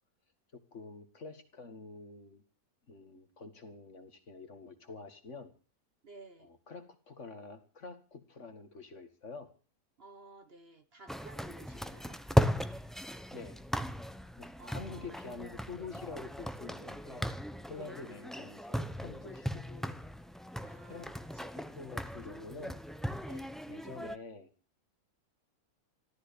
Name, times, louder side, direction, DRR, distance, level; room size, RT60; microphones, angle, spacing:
voice 1, 0.5-2.4 2.9-5.5 6.4-9.5 11.9-12.0 13.3-13.6 14.4-17.3 17.7-20.0 20.9-21.1 21.5-22.8 23.7-24.5, left 4 dB, 55° left, 8 dB, 2.2 m, -47 dB
voice 2, 6.0-6.5 10.0-12.2 14.6-15.2 17.7-18.2 20.6-21.5 23.3-23.5, right 3 dB, 45° right, 10 dB, 1.3 m, -54 dB
sound 1, 11.1-24.2, equal, ahead, 0.5 m, -37 dB
14.5 x 13.5 x 6.9 m, 0.38 s
omnidirectional pair, 1.6 m